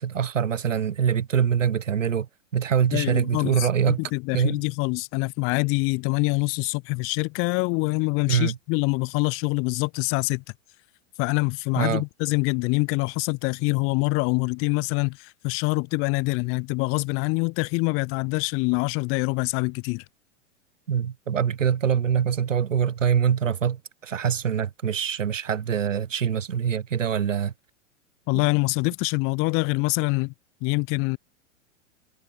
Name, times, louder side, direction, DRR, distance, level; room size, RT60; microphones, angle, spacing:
voice 1, 0.0-2.3 2.5-4.0 4.3-4.6 8.3-8.5 11.8-12.0 20.9-27.5, right 8 dB, 85° right, 1.1 m, -24 dB
voice 2, 2.9-10.4 11.2-20.0 28.3-30.3 30.6-31.2, left 29 dB, 35° left, 0.7 m, -25 dB
figure-of-eight pair, 95°, 37 cm